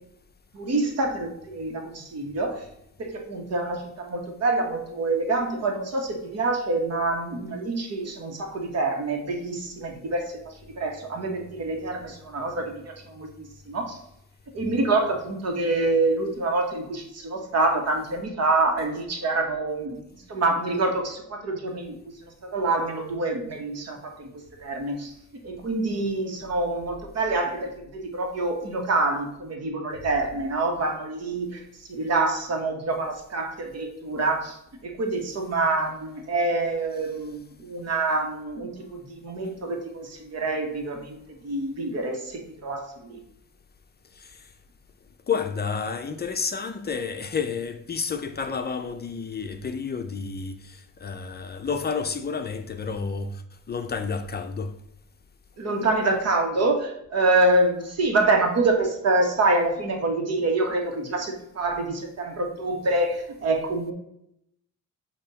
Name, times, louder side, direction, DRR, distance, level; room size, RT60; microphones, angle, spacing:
voice 1, 0.5-2.6 3.0-14.0 14.5-20.0 20.3-24.3 24.6-25.1 25.4-31.6 31.9-41.2 41.4-43.2 55.6-63.9, right 2 dB, 55° right, 1.6 m, -26 dB
voice 2, 44.1-44.5 45.3-53.4 53.7-54.7, left 5 dB, 35° left, 0.6 m, -30 dB
8.0 x 2.9 x 4.0 m
cardioid pair, 90°, 30 cm